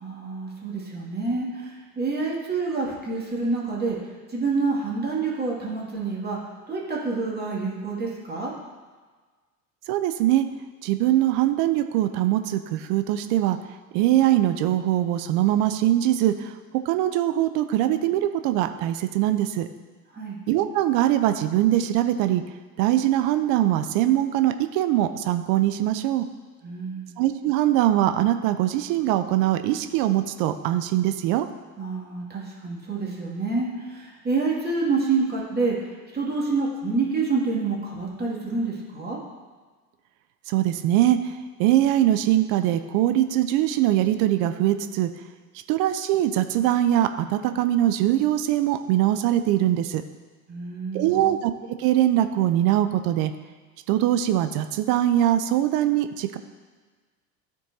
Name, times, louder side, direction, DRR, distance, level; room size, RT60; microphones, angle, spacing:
voice 1, 0.0-4.0 4.3-6.4 6.7-8.5 20.1-20.4 26.6-27.1 31.8-35.8 36.1-39.2 50.5-51.3, right 4 dB, 20° right, -4 dB, 2.2 m, -27 dB
voice 2, 9.9-10.5 10.8-13.6 13.9-16.5 16.9-19.7 20.5-22.4 22.8-26.2 27.2-31.5 40.5-41.3 41.6-45.1 45.7-50.0 50.9-51.5 51.8-53.3 53.9-56.4, right 13 dB, 45° right, 9 dB, 0.6 m, -22 dB
13.0 x 4.6 x 2.7 m, 1.4 s
figure-of-eight pair, 75°, 47 cm